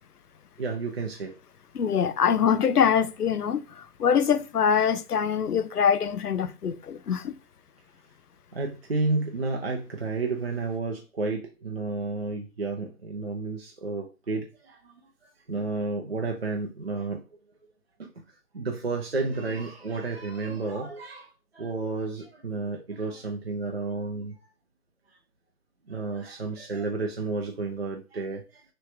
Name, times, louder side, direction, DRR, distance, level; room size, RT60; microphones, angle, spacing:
voice 1, 0.6-1.3 8.5-14.9 15.5-17.2 18.0-18.1 18.5-24.3 25.9-28.6, right 3 dB, 45° right, 0.5 m, -31 dB
voice 2, 1.7-7.3, left 7 dB, 85° left, 0.6 m, -24 dB
3.1 x 2.6 x 3.2 m
figure-of-eight pair, 155°, 45 cm